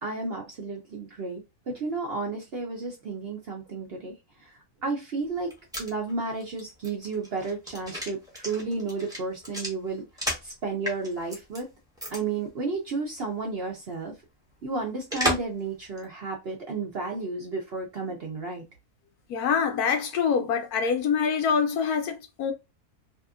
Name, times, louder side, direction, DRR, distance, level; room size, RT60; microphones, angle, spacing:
voice 1, 0.0-5.5 5.8-10.1 10.4-11.7 12.1-14.1 14.6-18.6, right 3 dB, 55° right, 0.7 m, -32 dB
sound 1, 5.3-10.5 10.8-11.6 12.0-12.2 12.5-12.6 15.1-15.6 16.0-16.1, equal, 5° right, 0.7 m, -33 dB
voice 2, 19.3-22.5, left 6 dB, 80° left, 1.1 m, -25 dB
2.8 x 2.5 x 2.3 m
omnidirectional pair, 1.6 m